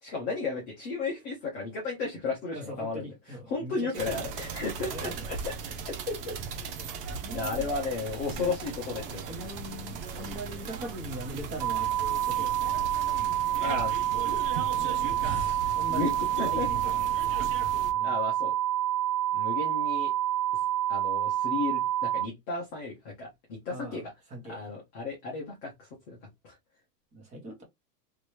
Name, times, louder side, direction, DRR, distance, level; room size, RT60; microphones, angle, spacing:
voice 1, 0.0-3.1 3.5-5.5 5.8-6.4 7.3-9.2 13.6-14.0 15.2-16.1 16.4-16.7 18.0-18.5 19.3-20.1 20.5-20.6 20.9-24.1 24.4-26.2 26.4-26.6, left 3 dB, 15° left, 0.5 m, -34 dB
voice 2, 2.5-4.2 4.8-5.2 7.1-7.7 8.5-8.6 8.9-12.9 14.8-15.4 15.7-17.1 17.9-18.2 23.7-24.7 27.1-27.6, right 1 dB, 15° right, 1.0 m, -41 dB
sound 1, 3.9-17.9, right 5 dB, 35° right, 0.6 m, -38 dB
sound 2, 11.6-22.3, right 12 dB, 80° right, 0.6 m, -28 dB
3.2 x 2.6 x 3.0 m
supercardioid pair, 160°, 48 cm